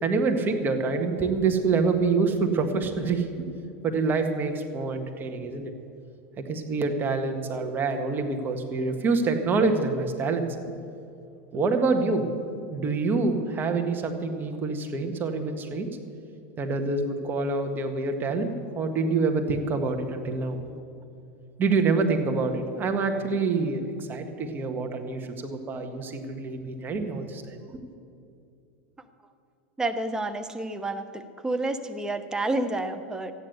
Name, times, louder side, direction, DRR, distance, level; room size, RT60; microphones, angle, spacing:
voice 1, 0.0-3.5 3.8-5.7 6.4-10.7 11.5-12.3 12.7-15.9 16.6-20.6 21.6-27.8, right 4 dB, 30° right, 5 dB, 1.7 m, -26 dB
voice 2, 29.8-33.3, right 2 dB, 10° right, 7 dB, 0.9 m, -29 dB
14.0 x 9.8 x 8.0 m, 2.5 s
hypercardioid pair, 110°, 7 cm